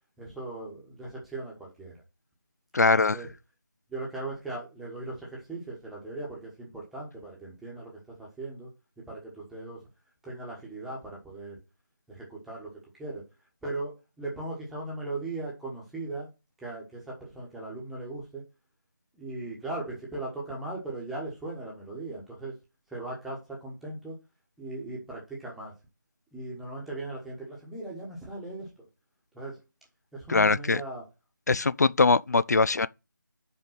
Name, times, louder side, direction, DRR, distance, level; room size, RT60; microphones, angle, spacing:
voice 1, 0.2-2.0 2.8-3.3 3.9-8.7 9.1-9.8 10.2-11.6 12.1-13.3 13.6-16.3 16.6-18.4 19.1-22.5 22.9-24.2 24.6-25.7 26.3-28.9 29.3-29.6 30.1-31.1, right 2 dB, ahead, 1.2 m, -38 dB
voice 2, 2.7-3.2 30.3-30.8 31.5-32.9, left 4 dB, 55° left, 0.4 m, -22 dB
5.5 x 5.2 x 5.7 m
figure-of-eight pair, 165°, 11 cm